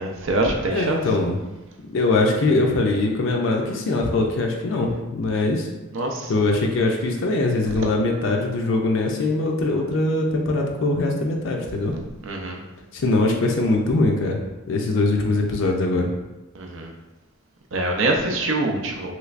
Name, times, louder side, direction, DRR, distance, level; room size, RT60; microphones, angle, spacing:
voice 1, 0.0-1.0 5.9-6.3 12.2-12.6 16.5-16.9 17.7-19.1, right 2 dB, 65° right, 1 dB, 0.5 m, -24 dB
voice 2, 0.7-1.4 1.9-5.7 6.3-11.9 12.9-14.4 14.7-16.1 17.9-18.0, left 2 dB, 60° left, 1 dB, 0.4 m, -22 dB
3.2 x 3.0 x 2.4 m, 1.1 s
head